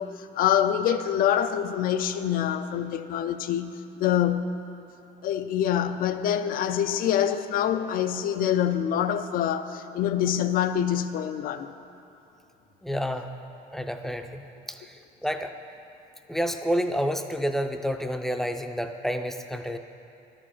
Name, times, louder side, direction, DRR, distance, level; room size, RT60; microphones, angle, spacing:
voice 1, 0.0-4.5 5.2-11.7, left 10 dB, 60° left, 10 dB, 0.4 m, -25 dB
voice 2, 12.8-13.3 13.7-14.9 15.2-15.5 16.3-19.8, equal, ahead, 6 dB, 0.5 m, -29 dB
12.0 x 5.1 x 5.6 m, 2.7 s
cardioid pair, 110°, 17 cm